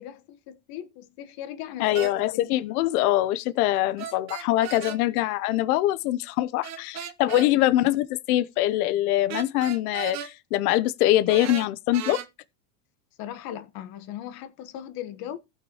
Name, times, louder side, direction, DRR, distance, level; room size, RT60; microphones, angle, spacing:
voice 1, 0.0-2.5 7.3-7.5 13.2-15.4, left 11 dB, 50° left, 1.5 m, -38 dB
voice 2, 1.8-12.2, left 15 dB, 70° left, 0.9 m, -23 dB
sound 1, 1.9-2.1 4.0-5.0 6.6-7.5 9.3-10.3 11.3-12.3, right 9 dB, 35° right, 1.2 m, -35 dB
15.0 x 6.0 x 3.0 m
supercardioid pair, 125°, 46 cm